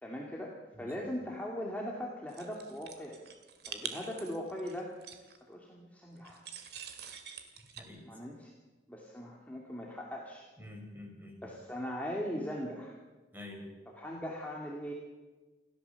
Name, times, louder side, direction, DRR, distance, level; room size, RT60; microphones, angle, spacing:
voice 1, 0.0-3.2 3.7-4.9 5.5-6.4 8.0-8.5 8.9-10.5 11.4-13.0 13.9-14.9, equal, 10° left, -2 dB, 2.3 m, -40 dB
voice 2, 0.7-1.1 7.8-8.0 10.6-11.6 13.3-13.7, left 1 dB, 10° right, 2 dB, 4.8 m, -48 dB
sound 1, 2.3-5.4 6.2-7.8, right 7 dB, 60° right, 2.2 m, -45 dB
28.5 x 13.0 x 7.0 m, 1.2 s
head